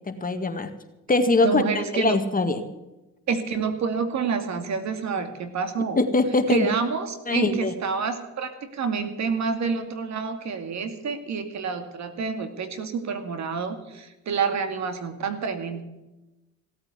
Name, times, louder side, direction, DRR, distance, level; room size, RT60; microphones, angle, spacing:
voice 1, 0.1-0.7 1.1-1.6 1.9-2.6 6.0-6.7 7.3-7.7, left 3 dB, 30° left, 7 dB, 1.9 m, -22 dB
voice 2, 1.4-2.2 3.3-6.0 6.5-15.8, right 5 dB, 65° right, 8 dB, 2.4 m, -28 dB
17.0 x 8.7 x 8.1 m, 1.0 s
cardioid pair, 90°, 30 cm